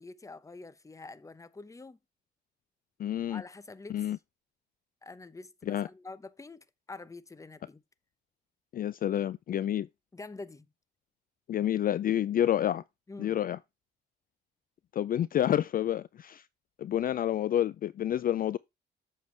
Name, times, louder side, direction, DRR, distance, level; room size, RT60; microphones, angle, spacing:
voice 1, 0.0-2.0 3.3-4.1 5.0-7.8 10.1-10.7 13.1-13.4, left 3 dB, 15° left, 0.8 m, -46 dB
voice 2, 3.0-3.4 3.9-4.2 5.7-5.9 8.7-9.9 11.5-12.8 13.2-13.6 14.9-16.4 16.8-18.6, left 11 dB, 45° left, 0.4 m, -29 dB
8.1 x 6.7 x 3.2 m
cardioid pair, 90°, 20 cm